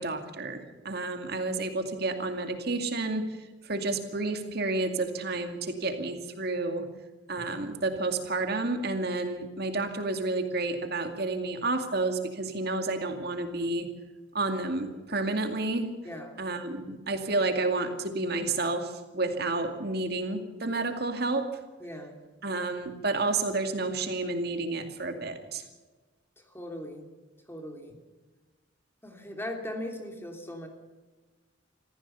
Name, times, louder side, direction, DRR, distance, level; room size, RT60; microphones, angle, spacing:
voice 1, 0.0-3.4 3.6-6.9 7.3-13.9 14.3-15.9 16.4-21.5 22.4-25.6, right 2 dB, 55° right, 6 dB, 2.3 m, -30 dB
voice 2, 16.0-16.4 16.9-17.0 21.8-22.2 26.5-27.1 27.5-28.0 29.0-30.7, left 1 dB, 10° left, 3 dB, 3.1 m, -39 dB
25.5 x 15.5 x 7.0 m, 1.2 s
head